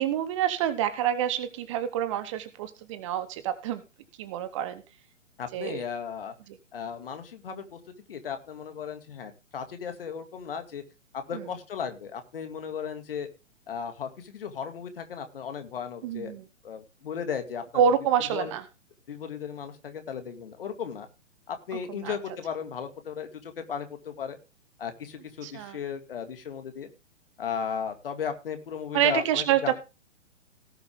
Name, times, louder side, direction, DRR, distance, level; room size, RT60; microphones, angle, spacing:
voice 1, 0.0-3.8 4.2-4.8 5.5-5.8 11.3-11.4 16.0-16.4 17.7-18.6 22.0-22.2 25.4-25.8 28.9-29.7, right 9 dB, 25° right, 12 dB, 1.0 m, -27 dB
voice 2, 5.4-6.3 6.7-7.8 8.1-10.8 11.1-13.3 13.7-16.3 16.6-17.8 18.3-18.5 19.1-21.1 21.5-24.4 24.8-26.9 27.4-29.7, left 7 dB, 50° left, 8 dB, 2.3 m, -35 dB
18.0 x 7.0 x 3.6 m, 0.29 s
figure-of-eight pair, 125°, 37 cm